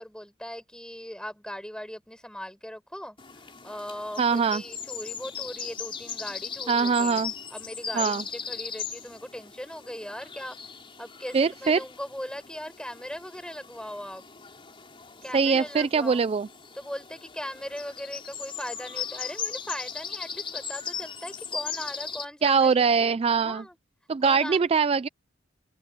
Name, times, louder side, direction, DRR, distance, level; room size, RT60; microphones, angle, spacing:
voice 1, 0.0-7.2 7.5-10.6 11.0-14.3 15.2-16.3 16.7-22.9 23.4-23.8 24.2-24.7, equal, 5° left, 6.8 m, -39 dB
sound 1, 3.2-22.3, left 7 dB, 30° left, 4.1 m, -38 dB
voice 2, 4.2-4.6 6.7-7.3 7.9-8.2 11.3-11.8 15.3-16.5 22.4-23.6 24.1-25.1, right 5 dB, 30° right, 0.3 m, -22 dB
open air
head